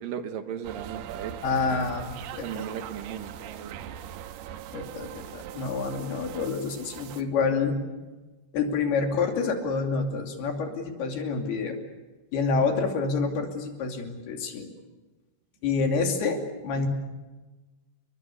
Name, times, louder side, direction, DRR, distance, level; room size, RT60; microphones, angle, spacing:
voice 1, 0.0-1.3 2.3-3.8 16.8-16.9, right 8 dB, 70° right, 8 dB, 2.7 m, -36 dB
sound 1, 0.6-7.2, right 10 dB, 85° right, 3.0 m, -41 dB
voice 2, 1.4-2.1 2.4-2.5 4.7-7.8 8.5-11.8 12.3-14.7 15.6-16.9, left 4 dB, 85° left, 3 dB, 4.7 m, -27 dB
29.5 x 22.5 x 6.8 m, 1.2 s
omnidirectional pair, 4.5 m